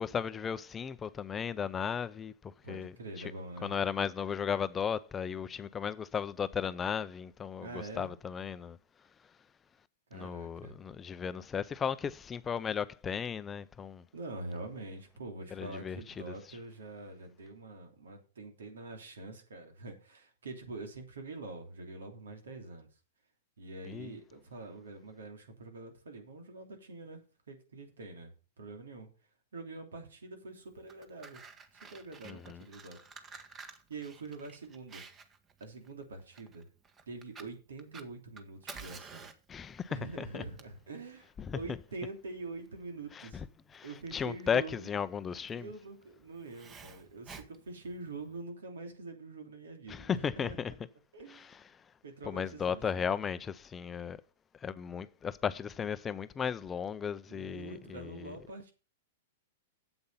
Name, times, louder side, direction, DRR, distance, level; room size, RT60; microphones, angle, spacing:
voice 1, 0.0-2.3 2.7-2.9 3.6-8.8 10.1-14.0 15.5-16.0 23.9-24.1 32.2-32.6 39.5-39.9 40.2-40.4 41.5-41.6 43.2-43.3 43.7-43.9 44.1-45.7 49.9-50.7 52.3-54.2 54.6-58.3, left 7 dB, 20° left, 0.5 m, -35 dB
voice 2, 2.6-3.8 7.6-8.1 10.1-10.8 14.1-22.9 23.6-29.1 29.5-31.4 31.9-33.0 33.3-33.6 33.9-35.0 35.6-36.7 37.1-39.3 39.9-43.5 43.8-44.9 45.5-50.8 51.1-51.5 52.0-53.2 57.3-58.7, right 3 dB, 85° right, 2.9 m, -45 dB
Fire, 30.7-48.4, right 5 dB, 25° right, 1.3 m, -52 dB
8.5 x 7.9 x 5.6 m
hypercardioid pair, 120°, 0 cm